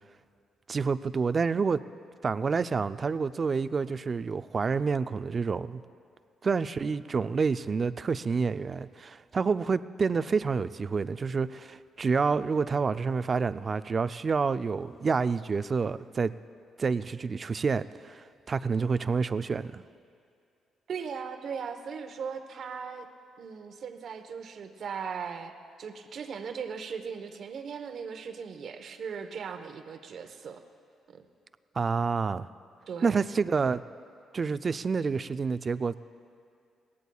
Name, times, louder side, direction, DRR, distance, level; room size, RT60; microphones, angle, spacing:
voice 1, 0.7-1.8 2.2-5.8 6.4-16.3 16.8-19.8 31.8-32.5 33.0-33.8 34.3-35.9, right 5 dB, 40° right, 0.4 m, -28 dB
voice 2, 20.9-23.1 23.4-30.6 31.1-31.2 32.9-33.2, right 6 dB, 60° right, 1.0 m, -38 dB
22.0 x 18.0 x 2.4 m
cardioid pair, 90°, 0 cm